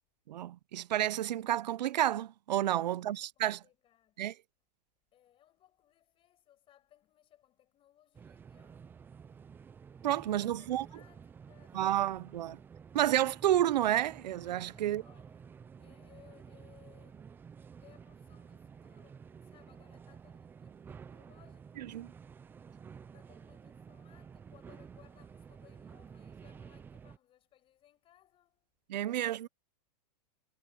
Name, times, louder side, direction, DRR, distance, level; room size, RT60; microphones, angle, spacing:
voice 1, 0.3-3.6 4.2-4.3 10.0-10.9 11.7-12.6 12.9-15.0 21.8-22.1 28.9-29.5, right 12 dB, 90° right, 0.6 m, -30 dB
voice 2, 2.8-4.2 5.1-9.4 10.2-12.6 14.7-15.5 15.8-17.4 17.8-22.0 23.1-28.7 29.1-29.5, left 12 dB, 25° left, 6.2 m, -65 dB
sound 1, 8.1-27.2, right 6 dB, 10° right, 0.4 m, -52 dB
supercardioid pair, 150°, 21 cm